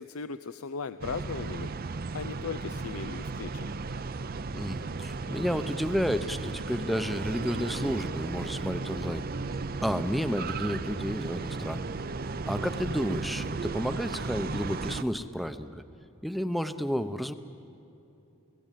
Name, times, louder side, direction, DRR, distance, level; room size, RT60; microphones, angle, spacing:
voice 1, 0.0-1.7 2.1-3.8, left 5 dB, 85° left, 12 dB, 0.6 m, -37 dB
sound 1, 1.0-15.0, right 3 dB, 45° right, 0.6 m, -35 dB
voice 2, 4.5-9.3 9.8-11.8 12.3-15.8 16.2-17.3, equal, ahead, 10 dB, 0.7 m, -31 dB
29.5 x 17.5 x 9.2 m, 2.9 s
head